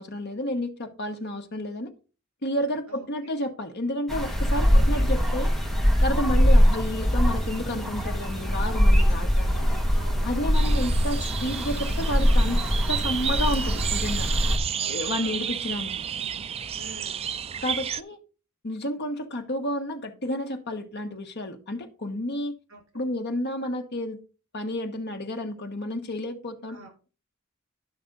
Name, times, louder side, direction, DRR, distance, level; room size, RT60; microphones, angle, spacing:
voice 1, 0.0-1.9 2.4-5.5 6.0-9.7 10.2-12.6 12.9-14.3 14.9-15.9 17.6-18.2 18.6-22.5 22.9-24.2 24.5-26.8, left 1 dB, 55° left, 1.3 m, -31 dB
voice 2, 2.9-3.3 4.6-5.2 6.5-6.8 9.4-10.6 14.7-15.5 16.7-17.3 22.7-23.0 26.7-26.9, right 1 dB, 75° right, 5.7 m, -47 dB
sound 1, 4.1-14.6, equal, ahead, 1.5 m, -22 dB
sound 2, 10.5-18.0, right 8 dB, 30° right, 0.3 m, -32 dB
11.5 x 6.0 x 3.9 m
head